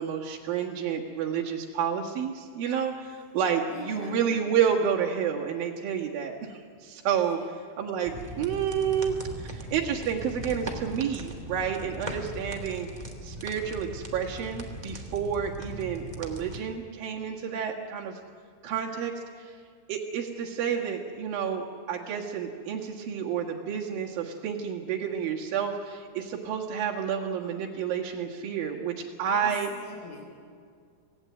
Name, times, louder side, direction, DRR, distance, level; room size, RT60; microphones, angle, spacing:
voice 1, 0.0-12.9 13.2-18.2 18.6-19.6 19.9-29.7, right 7 dB, 60° right, -2 dB, 3.0 m, -30 dB
voice 2, 3.6-4.2 7.4-7.5 8.0-8.5 29.3-30.2, left 2 dB, 60° left, -3 dB, 5.6 m, -43 dB
sound 1, 8.0-16.6, right 1 dB, 25° right, 0.9 m, -39 dB
26.0 x 17.5 x 9.5 m, 2.1 s
omnidirectional pair, 5.3 m